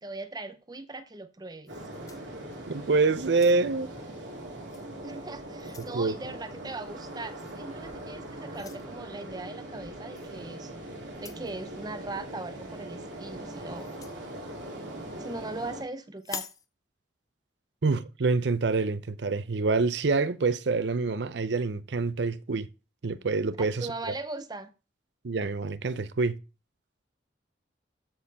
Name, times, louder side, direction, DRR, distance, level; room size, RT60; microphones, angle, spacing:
voice 1, 0.0-1.7 5.0-10.7 11.2-13.9 15.2-16.5 23.6-24.7, right 2 dB, 20° right, 0.7 m, -39 dB
sound 1, 1.7-2.8 3.2-3.9 4.7-4.9 5.3-6.0 7.4-7.6 8.5-8.9 10.1-10.3 11.1-11.5 13.8-14.2 16.2-16.7, left 6 dB, 20° left, 0.6 m, -44 dB
sound 2, 1.7-15.8, right 1 dB, 90° right, 2.5 m, -41 dB
voice 2, 2.7-3.9 5.9-6.2 17.8-22.7 23.0-23.9 25.2-26.4, right 3 dB, 70° right, 0.6 m, -26 dB
13.0 x 4.3 x 4.1 m
head